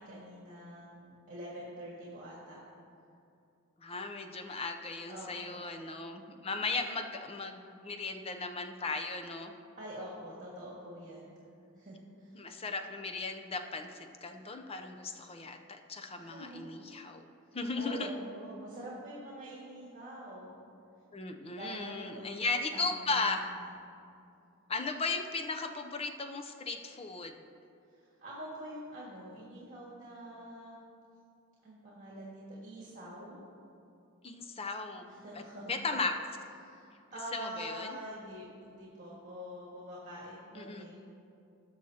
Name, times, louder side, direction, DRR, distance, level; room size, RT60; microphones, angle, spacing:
voice 1, 0.0-2.6 3.9-4.0 5.1-5.6 9.8-11.3 11.7-12.4 16.1-16.6 17.7-20.6 21.6-22.4 22.7-23.2 23.6-23.7 27.9-30.8 31.6-33.4 35.1-35.7 36.6-41.0, right 1 dB, 35° right, -6 dB, 1.7 m, -45 dB
voice 2, 3.8-9.5 12.3-17.3 17.5-18.1 21.1-23.4 24.7-27.5 34.2-35.0 35.3-35.4 35.7-36.1 37.3-38.0 40.5-40.9, left 3 dB, 25° left, 5 dB, 0.5 m, -36 dB
18.5 x 6.3 x 2.8 m, 2.6 s
head